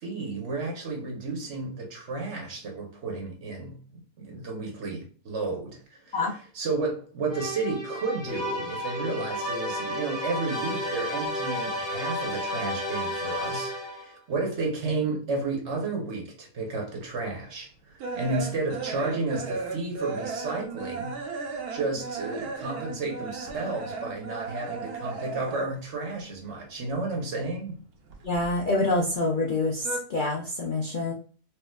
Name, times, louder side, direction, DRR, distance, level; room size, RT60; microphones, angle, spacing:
voice 1, 0.0-3.8 4.2-6.2 6.5-21.2 21.7-27.8, right 3 dB, 55° right, 1.1 m, -32 dB
sound 1, 7.3-14.1, equal, 70° left, 2.2 m, -32 dB
sound 2, 17.5-25.9 26.2-27.4 27.7-29.1 29.3-30.0, right 4 dB, 75° right, 1.2 m, -36 dB
voice 2, 28.2-31.1, left 2 dB, 90° left, 0.4 m, -26 dB
4.4 x 2.4 x 2.3 m
omnidirectional pair, 1.6 m